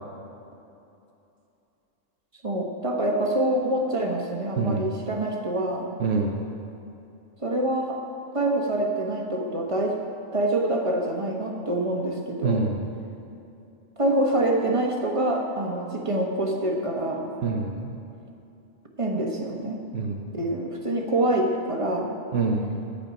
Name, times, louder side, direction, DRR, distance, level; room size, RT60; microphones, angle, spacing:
voice 1, 2.4-5.9 7.4-8.0 8.3-10.0 10.3-12.7 14.0-17.2 19.0-19.8 20.1-22.1, right 1 dB, 25° right, 0 dB, 1.3 m, -26 dB
voice 2, 4.6-4.9 6.0-6.4 12.4-12.9 17.4-17.9 19.9-20.2 22.3-22.8, right 4 dB, 70° right, 1 dB, 1.2 m, -25 dB
14.5 x 5.0 x 9.1 m, 2.7 s
omnidirectional pair, 1.3 m